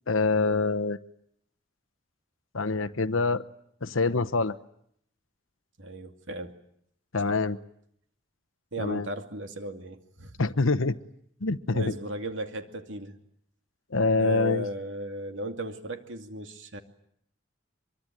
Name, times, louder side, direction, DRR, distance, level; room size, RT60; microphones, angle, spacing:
voice 1, 0.1-1.0 2.5-3.4 3.8-4.5 7.1-7.6 8.8-9.1 10.4-11.0 11.4-11.9 13.9-14.6, left 3 dB, 85° left, 14 dB, 1.1 m, -25 dB
voice 2, 5.8-6.6 7.2-7.4 8.7-10.4 11.7-13.1 14.2-16.8, right 1 dB, 70° right, 6 dB, 2.5 m, -36 dB
24.5 x 23.5 x 9.3 m, 0.70 s
head